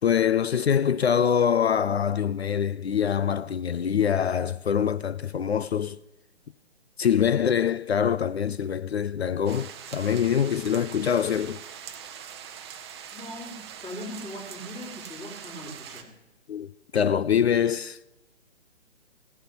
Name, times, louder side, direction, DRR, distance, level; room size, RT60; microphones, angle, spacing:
voice 1, 0.0-6.0 7.0-11.6 16.5-18.0, left 8 dB, 65° left, 0.5 m, -24 dB
sound 1, 9.5-16.0, right 8 dB, 25° right, 0.8 m, -42 dB
voice 2, 13.1-16.1, left 1 dB, 15° left, 3.3 m, -40 dB
16.0 x 8.0 x 5.7 m
figure-of-eight pair, 130°, 35 cm